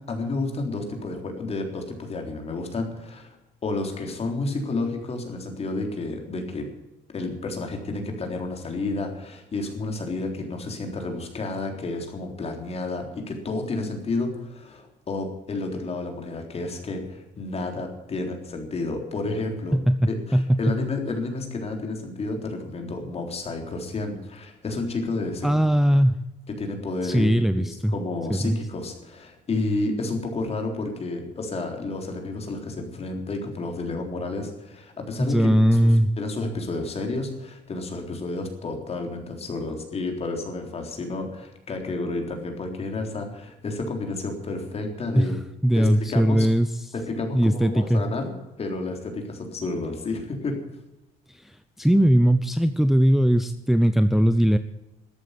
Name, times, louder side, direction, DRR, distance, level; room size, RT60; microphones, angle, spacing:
voice 1, 0.0-3.4 3.6-6.7 7.1-19.8 20.1-25.6 26.6-27.7 27.9-45.3 45.7-46.5 46.9-48.3 48.6-50.6, left 2 dB, 35° left, 3 dB, 3.7 m, -31 dB
voice 2, 19.7-20.8 25.4-26.2 27.0-27.9 28.3-28.6 35.2-36.1 45.1-45.4 45.6-46.9 47.3-48.0 51.3-54.6, equal, ahead, 10 dB, 0.6 m, -20 dB
13.5 x 8.9 x 9.7 m, 0.97 s
cardioid pair, 110°, 17 cm